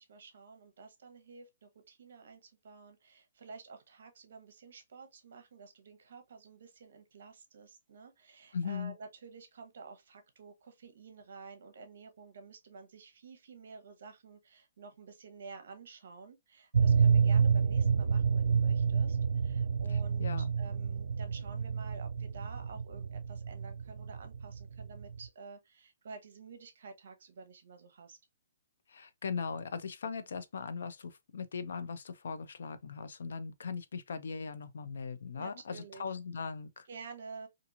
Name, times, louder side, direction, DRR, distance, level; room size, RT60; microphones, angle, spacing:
voice 1, 0.0-19.2 19.4-28.2 35.4-36.1 36.9-37.5, right 4 dB, 55° right, 0.7 m, -51 dB
voice 2, 8.5-8.9 19.9-20.5 28.9-36.9, left 5 dB, 65° left, 0.4 m, -39 dB
sound 1, 16.7-25.3, right 6 dB, 85° right, 0.3 m, -29 dB
2.9 x 2.5 x 2.4 m
hypercardioid pair, 175°, 0 cm